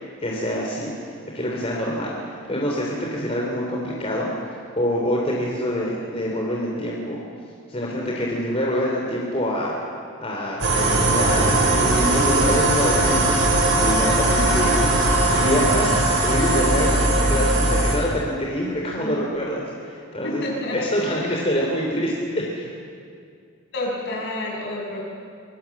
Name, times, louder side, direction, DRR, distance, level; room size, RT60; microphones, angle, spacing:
voice 1, 0.2-4.3 4.8-7.2 7.7-9.7 10.2-13.4 13.8-14.9 15.3-20.4 20.7-22.7, equal, 30° left, -2 dB, 3.3 m, -26 dB
sound 1, 10.6-18.0, right 2 dB, 75° right, 5.9 m, -19 dB
voice 2, 20.2-21.5 23.7-25.0, left 1 dB, 55° left, -1 dB, 6.6 m, -30 dB
25.5 x 21.0 x 7.3 m, 2.3 s
head